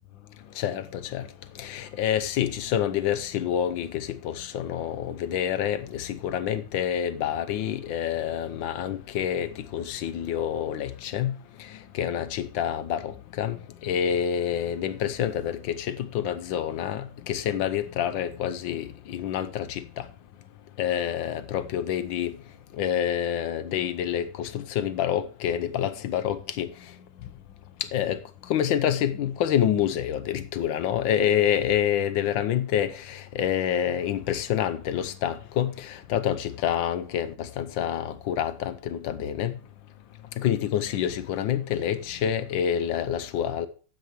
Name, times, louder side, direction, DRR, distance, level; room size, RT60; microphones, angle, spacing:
voice 1, 0.6-1.2 1.6-11.3 11.9-13.6 13.8-20.0 20.8-22.4 22.8-26.7 27.9-28.2 28.5-39.5 40.4-43.7, left 10 dB, 85° left, 1.5 m, -27 dB
13.0 x 9.3 x 3.1 m
omnidirectional pair, 2.0 m